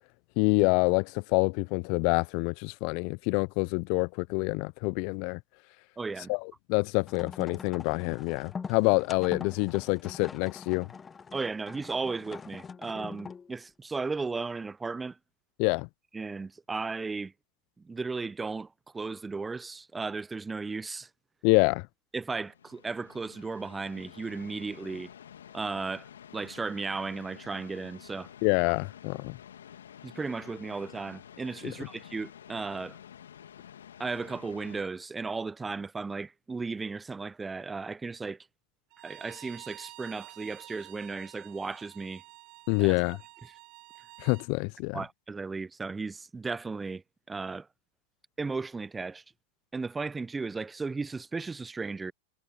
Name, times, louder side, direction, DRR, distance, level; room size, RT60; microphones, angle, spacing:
voice 1, 0.4-5.4 6.3-10.9 15.6-15.9 21.4-21.9 28.4-29.4 31.6-31.7 42.7-43.2 44.2-45.0, left 35 dB, 50° left, 0.4 m, -27 dB
voice 2, 6.0-6.3 11.3-15.2 16.1-17.3 17.8-18.7 18.9-21.1 22.1-25.1 25.5-26.1 26.3-28.3 30.0-33.0 34.0-38.4 39.0-42.2 42.8-42.9 44.9-47.0 47.3-47.7 48.4-49.2 49.7-52.1, right 4 dB, 15° right, 0.6 m, -35 dB
sound 1, 7.1-13.5, left 5 dB, 20° left, 1.0 m, -43 dB
sound 2, 22.3-34.8, left 9 dB, 75° left, 2.7 m, -50 dB
Bowed string instrument, 38.9-44.5, right 26 dB, 50° right, 3.2 m, -50 dB
hypercardioid pair, 95°, 0 cm